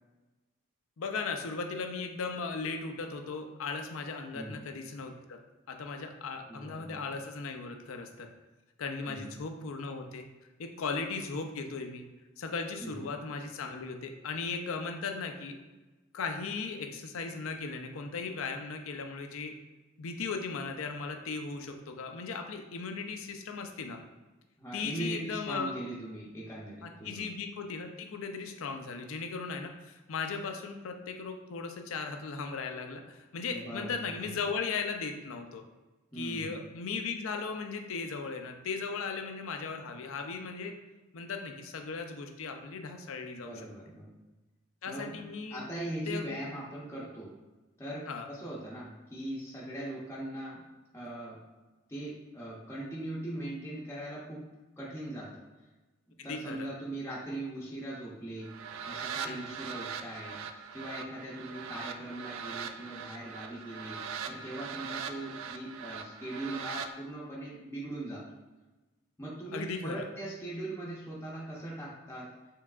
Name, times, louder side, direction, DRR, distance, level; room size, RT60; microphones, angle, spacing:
voice 1, 1.0-5.4 5.7-8.3 8.8-10.3 10.6-12.0 12.4-15.6 16.1-19.5 20.0-24.0 24.7-25.7 26.8-35.6 36.1-40.8 41.1-43.5 44.8-45.7 46.1-46.4 48.1-48.3 56.3-56.7 59.2-59.4 69.5-70.1, left 4 dB, 70° left, 5 dB, 0.5 m, -37 dB
voice 2, 6.5-7.0 9.1-9.3 12.8-13.1 24.6-27.3 33.5-34.4 36.1-36.5 43.4-44.2 44.9-45.2 45.5-47.3 47.8-50.6 50.9-51.4 51.9-54.5 54.8-55.4 56.1-58.5 58.9-60.4 60.7-64.0 64.3-68.2 69.2-72.3, right 1 dB, 10° left, -6 dB, 0.6 m, -40 dB
sound 1, 58.4-66.9, right 6 dB, 70° right, 0.3 m, -41 dB
4.6 x 3.4 x 2.4 m, 1.1 s
head